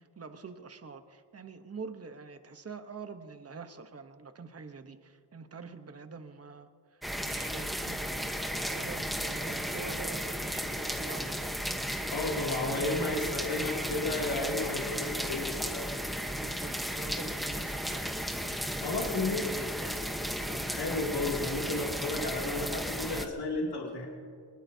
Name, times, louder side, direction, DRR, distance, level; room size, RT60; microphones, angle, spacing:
voice 1, 0.0-6.7 7.2-11.5 16.3-18.1 18.9-20.0, right 4 dB, 35° right, 8 dB, 1.0 m, -45 dB
sound 1, 7.0-23.3, equal, ahead, 1.0 m, -34 dB
voice 2, 12.1-15.9 18.8-19.4 20.5-24.1, left 2 dB, 65° left, -3 dB, 2.7 m, -33 dB
23.5 x 21.0 x 2.8 m, 2.2 s
wide cardioid pair, 150°, 43 cm